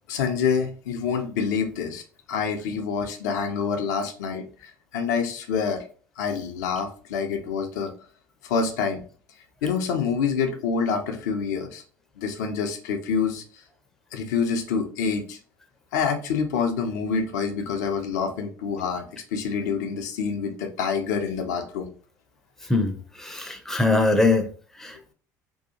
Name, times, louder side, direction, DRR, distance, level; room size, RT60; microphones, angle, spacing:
voice 1, 0.1-2.0 2.3-5.8 6.2-7.9 8.4-9.0 9.6-11.8 12.2-13.4 14.1-15.4 15.9-19.0 19.3-21.9, left 6 dB, 70° left, 0.5 m, -27 dB
voice 2, 23.2-24.5 24.8-25.1, left 2 dB, 5° left, 0.6 m, -22 dB
2.7 x 2.3 x 2.7 m
figure-of-eight pair, 60°, 10 cm